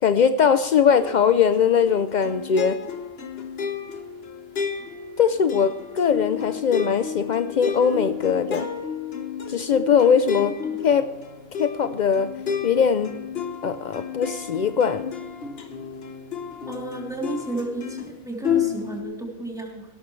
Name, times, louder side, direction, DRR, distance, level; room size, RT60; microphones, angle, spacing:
voice 1, 0.0-2.8 5.2-8.7 9.5-10.5 10.8-11.1 11.6-12.3 12.6-13.1 13.6-15.1, left 7 dB, 70° left, 11 dB, 0.4 m, -20 dB
sound 1, 0.9-18.1 18.4-19.0, left 7 dB, 50° left, 1.3 m, -31 dB
voice 2, 10.4-10.8 16.7-19.9, right 2 dB, ahead, -2 dB, 3.1 m, -33 dB
17.0 x 13.5 x 3.2 m, 1.1 s
omnidirectional pair, 1.4 m